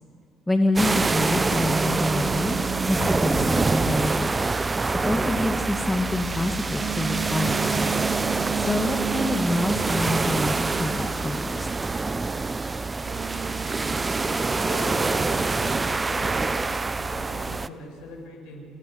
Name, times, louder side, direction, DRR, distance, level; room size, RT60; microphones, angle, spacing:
voice 1, 0.5-2.6 2.9-4.3 5.0-7.9 8.6-11.7, left 1 dB, 10° left, 4 dB, 2.2 m, -26 dB
sound 1, 0.6-4.4 6.7-11.1 13.0-16.8, right 9 dB, 50° right, 0.8 m, -34 dB
sound 2, 0.8-17.7, right 3 dB, 25° right, 1.0 m, -26 dB
voice 2, 14.7-16.4 16.9-18.7, left 2 dB, 70° left, 1 dB, 7.6 m, -41 dB
29.5 x 17.5 x 7.9 m, 2.3 s
hypercardioid pair, 55°, 0 cm